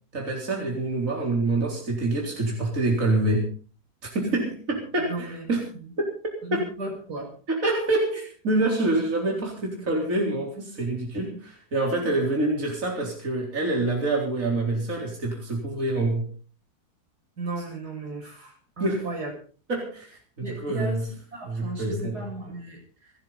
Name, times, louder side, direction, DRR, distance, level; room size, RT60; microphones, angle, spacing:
voice 1, 0.1-3.5 4.0-5.7 6.0-6.1 6.5-6.6 7.5-16.3 18.8-19.1 19.7-21.0 21.4-22.3, right 2 dB, 55° right, 0 dB, 4.5 m, -26 dB
voice 2, 5.0-5.4 5.8-5.9 6.4-7.3 17.4-19.3 20.4-23.1, right 2 dB, 80° right, 1 dB, 7.0 m, -35 dB
29.5 x 10.5 x 4.0 m, 0.39 s
omnidirectional pair, 1.7 m